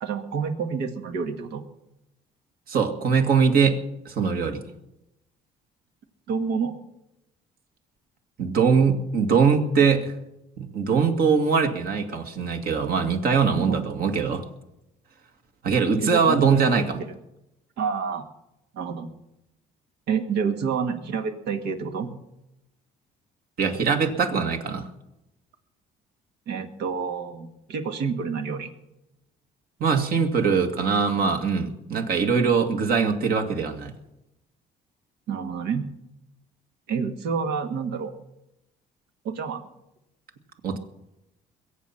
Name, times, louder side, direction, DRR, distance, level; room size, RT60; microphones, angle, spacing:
voice 1, 0.0-1.6 6.3-6.8 13.5-13.9 16.0-16.9 17.8-18.2 18.7-19.1 20.1-22.1 26.5-28.7 35.3-35.8 36.9-38.1 39.2-39.6, right 6 dB, 80° right, 6 dB, 1.9 m, -28 dB
voice 2, 2.7-3.8 4.1-4.6 8.4-10.1 10.6-14.4 15.6-17.0 23.6-24.9 29.8-33.9 40.6-40.8, right 5 dB, 60° right, 5 dB, 2.2 m, -22 dB
22.0 x 8.4 x 5.8 m, 0.89 s
cardioid pair, 110°, 17 cm